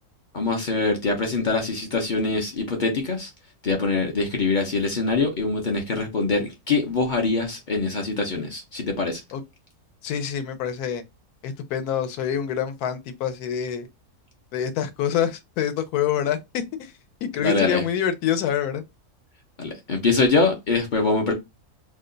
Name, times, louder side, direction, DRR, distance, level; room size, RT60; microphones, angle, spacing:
voice 1, 0.3-3.3 3.6-9.2 17.4-17.8 19.6-21.3, left 3 dB, 55° left, 0.5 m, -24 dB
voice 2, 10.0-11.0 11.4-13.9 14.5-16.4 16.8-16.9 17.2-18.8, left 9 dB, 80° left, 1.1 m, -26 dB
2.8 x 2.2 x 3.7 m
omnidirectional pair, 1.6 m